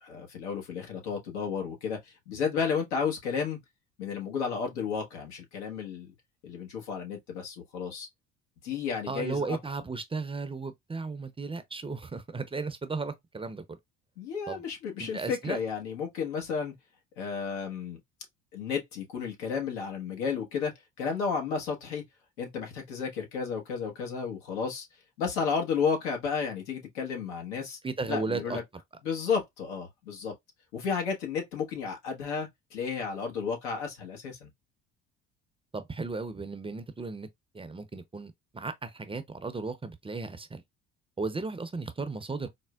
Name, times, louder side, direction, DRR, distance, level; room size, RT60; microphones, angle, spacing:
voice 1, 0.0-3.6 4.0-6.1 6.4-8.1 8.6-9.6 14.2-16.7 17.2-18.0 18.5-22.0 22.4-24.8 25.2-27.8 28.1-28.6 29.0-30.3 30.7-34.5, left 6 dB, 85° left, 1.1 m, -32 dB
voice 2, 9.1-13.8 14.5-14.6 15.0-15.6 27.8-28.6 35.7-37.3 37.5-40.6 41.2-42.5, right 4 dB, 15° right, 0.5 m, -35 dB
4.3 x 2.1 x 2.2 m
hypercardioid pair, 70°, 33 cm